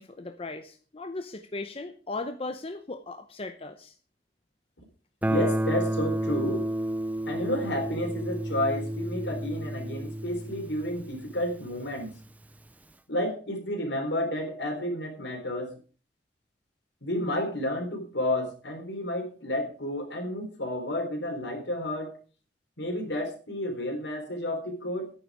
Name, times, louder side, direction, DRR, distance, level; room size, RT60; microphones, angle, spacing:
voice 1, 0.0-3.9, left 2 dB, 35° left, 7 dB, 0.8 m, -37 dB
voice 2, 5.2-6.7 7.3-12.2 13.1-15.8 17.0-22.2 22.8-25.1, left 1 dB, 75° left, 4 dB, 3.7 m, -31 dB
Guitar, 5.2-11.9, right 1 dB, 10° right, 0.5 m, -31 dB
10.5 x 9.7 x 4.9 m, 0.38 s
head